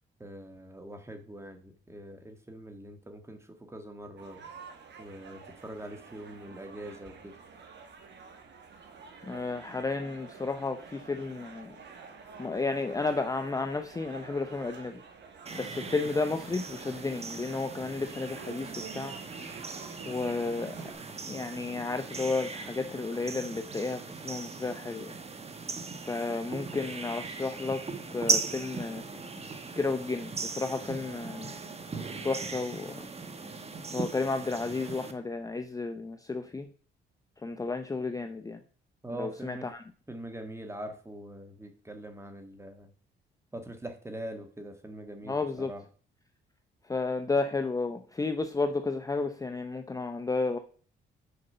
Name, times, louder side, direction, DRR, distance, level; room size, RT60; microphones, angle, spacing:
voice 1, 0.2-4.4 5.0-7.4 39.0-39.7 40.1-42.9 43.5-45.8, right 1 dB, 15° right, 6 dB, 1.7 m, -43 dB
sound 1, 4.2-20.9, right 5 dB, 60° right, 1.7 m, -49 dB
voice 2, 9.2-11.8 12.4-15.0 15.5-19.8 20.1-20.8 21.3-25.1 26.0-27.8 28.1-29.0 29.8-31.5 32.2-33.1 33.9-36.7 37.4-38.6 39.2-39.8 45.3-45.7 46.9-50.6, left 3 dB, 15° left, 7 dB, 0.6 m, -32 dB
sound 2, 15.5-35.1, right 4 dB, 30° right, 1.1 m, -38 dB
6.7 x 5.2 x 5.5 m, 0.42 s
cardioid pair, 90°, 20 cm